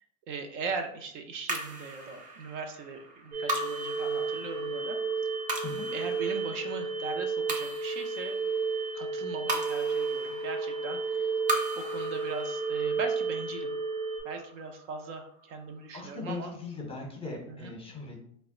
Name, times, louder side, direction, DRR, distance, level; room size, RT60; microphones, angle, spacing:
voice 1, 0.3-5.0 5.9-8.3 8.9-11.3 11.8-13.7 14.2-16.5 17.5-17.7, right 4 dB, 65° right, 5 dB, 0.6 m, -39 dB
sound 1, 1.5-16.0, right 1 dB, 20° right, 0.4 m, -39 dB
sound 2, 3.3-14.2, right 4 dB, 85° right, 1.1 m, -32 dB
voice 2, 15.9-18.2, left 3 dB, 15° left, -1 dB, 0.7 m, -39 dB
2.1 x 2.0 x 3.6 m, 0.67 s
hypercardioid pair, 105°, 39 cm